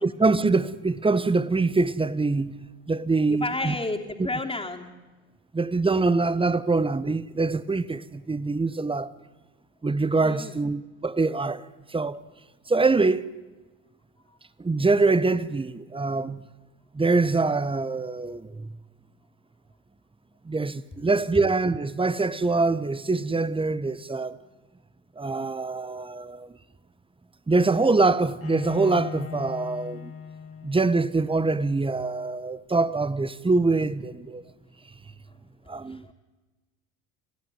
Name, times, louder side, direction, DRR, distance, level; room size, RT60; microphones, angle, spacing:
voice 1, 0.0-2.6 2.9-3.7 4.2-4.3 5.5-9.1 9.8-12.2 12.7-13.3 14.6-16.4 16.9-18.7 20.4-24.4 25.2-26.5 27.5-30.1 30.6-34.4 35.7-36.0, right 3 dB, 15° right, 1.1 m, -24 dB
voice 2, 3.3-4.9 10.2-10.6 35.9-36.1, left 2 dB, 15° left, 3.1 m, -31 dB
Bowed string instrument, 28.4-31.4, left 8 dB, 35° left, 2.4 m, -38 dB
28.0 x 15.5 x 9.3 m
hypercardioid pair, 70°, 41 cm